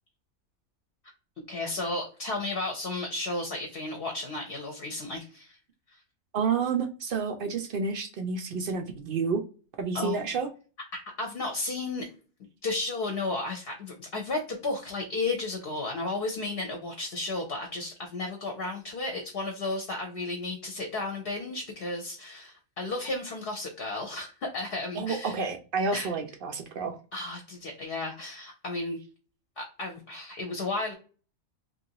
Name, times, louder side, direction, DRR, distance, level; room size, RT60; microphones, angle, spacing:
voice 1, 1.5-5.6 9.9-10.2 11.2-12.0 12.6-25.4 25.9-26.1 27.1-29.0 29.6-30.9, left 2 dB, 55° left, 3 dB, 0.8 m, -33 dB
voice 2, 6.3-9.4 9.8-10.5 24.9-27.0, right 5 dB, 75° right, 5 dB, 0.5 m, -30 dB
3.0 x 2.5 x 2.7 m, 0.37 s
omnidirectional pair, 1.5 m